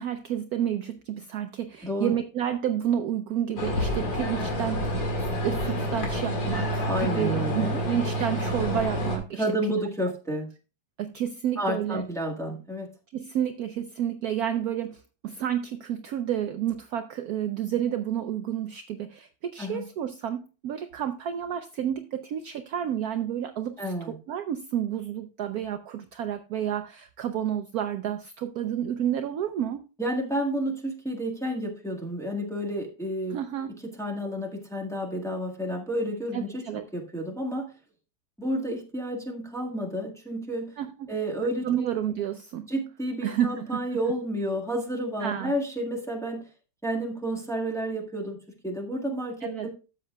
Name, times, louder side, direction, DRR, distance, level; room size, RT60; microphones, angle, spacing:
voice 1, 0.0-9.5 11.0-12.0 13.1-29.8 33.3-33.7 36.3-36.8 40.8-41.1 41.6-42.7 43.2-44.0 45.2-45.5 49.4-49.7, right 10 dB, 70° right, 9 dB, 0.9 m, -30 dB
sound 1, 3.6-9.2, equal, 85° left, 2.8 m, -28 dB
voice 2, 6.9-7.8 9.3-10.5 11.6-12.9 19.6-19.8 23.8-24.1 30.0-33.4 33.8-37.7 38.4-40.7 41.1-41.7 42.7-46.4 46.8-49.7, equal, ahead, -1 dB, 1.4 m, -30 dB
12.5 x 7.5 x 2.3 m, 0.33 s
omnidirectional pair, 2.0 m